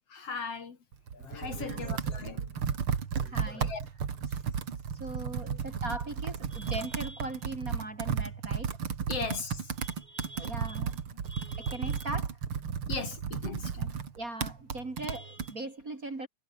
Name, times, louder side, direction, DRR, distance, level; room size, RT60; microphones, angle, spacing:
voice 1, 0.1-0.8 1.1-2.5 3.2-3.8 5.5-5.6 9.1-9.7 11.1-11.2 12.9-14.0, left 5 dB, 50° left, 3.3 m, -38 dB
Computer keyboard, 0.9-15.5, right 7 dB, 45° right, 2.8 m, -34 dB
voice 2, 3.3-3.7 4.3-4.4 5.0-8.7 9.8-10.9 11.3-12.3 14.2-16.3, right 2 dB, 25° right, 3.2 m, -39 dB
omnidirectional pair, 3.6 m